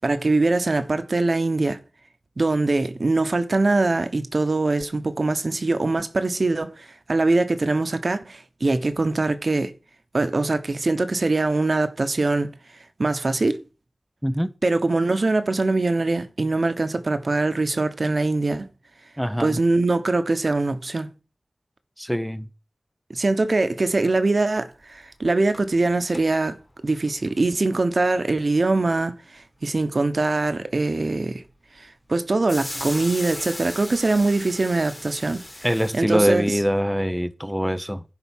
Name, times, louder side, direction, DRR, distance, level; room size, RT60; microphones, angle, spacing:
voice 1, 0.0-1.8 2.4-9.7 10.1-12.5 13.0-13.6 14.6-18.7 19.4-21.1 23.1-26.6 26.8-31.4 31.8-35.4 35.9-36.6, right 2 dB, 60° right, 1.2 m, -22 dB
voice 2, 14.2-14.5 19.2-19.6 22.0-22.5 35.6-38.0, equal, ahead, 0.7 m, -23 dB
sound 1, 24.8-24.9 25.2-25.3 25.5-26.4 26.9-27.5 28.4-28.5 32.5-36.0, left 1 dB, 20° left, 2.3 m, -37 dB
11.0 x 4.8 x 7.3 m
wide cardioid pair, 65°, 0 cm